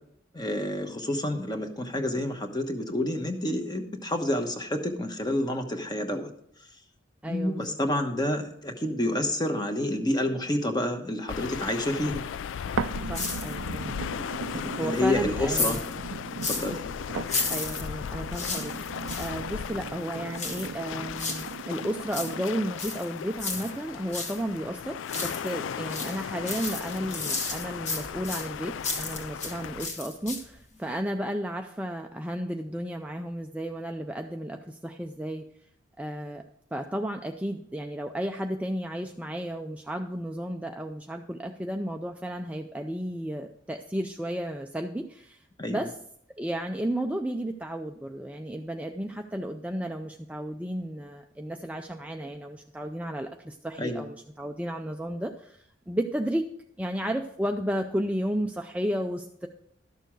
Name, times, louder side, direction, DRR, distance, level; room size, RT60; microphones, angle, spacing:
voice 1, 0.3-6.3 7.2-12.2 14.5-15.8 16.5-16.8 45.6-45.8 53.8-54.1, left 1 dB, 20° left, 5 dB, 1.1 m, -29 dB
voice 2, 7.2-7.8 13.1-13.9 14.8-15.8 17.5-35.5 36.0-36.4 36.7-45.9 46.4-56.4 56.8-59.5, right 1 dB, 5° right, 4 dB, 0.4 m, -33 dB
sound 1, 11.3-29.9, left 7 dB, 70° left, 0.3 m, -37 dB
sound 2, 12.8-22.8 23.3-23.4, right 5 dB, 90° right, 0.4 m, -38 dB
sound 3, 13.1-13.9 14.2-16.8 17.2-19.4 20.3-21.6 21.9-24.4 24.8-25.6 25.9-29.5 29.8-30.6 30.9-31.0, left 4 dB, 35° left, 1.4 m, -34 dB
12.5 x 6.8 x 4.6 m, 0.69 s
head